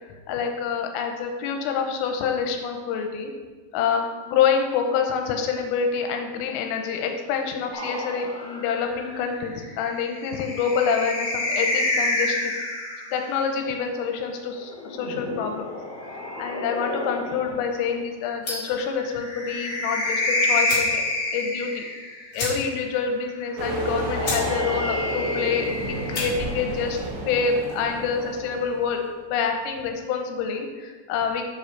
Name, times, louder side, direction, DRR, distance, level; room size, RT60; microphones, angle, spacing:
voice 1, 0.3-3.3 3.7-12.6 13.1-15.7 16.1-21.0 21.3-21.9 22.3-27.0 27.3-29.0 29.3-31.5, left 6 dB, 90° left, 4 dB, 3.3 m, -27 dB
sound 1, 7.7-13.3 14.6-17.6 19.0-22.4 23.7-26.6, left 1 dB, 70° left, 2.2 m, -29 dB
sound 2, 18.4-18.8 20.1-20.2 20.6-21.0 21.3-21.4 21.7-21.8 22.3-22.9 23.3-23.4 23.9-24.0 24.2-24.5 24.8-25.2 25.9-26.3, left 2 dB, 55° left, 1.3 m, -31 dB
sound 3, 23.6-29.1, right 1 dB, 70° right, 3.4 m, -32 dB
8.2 x 7.5 x 3.2 m, 1.4 s
omnidirectional pair, 5.9 m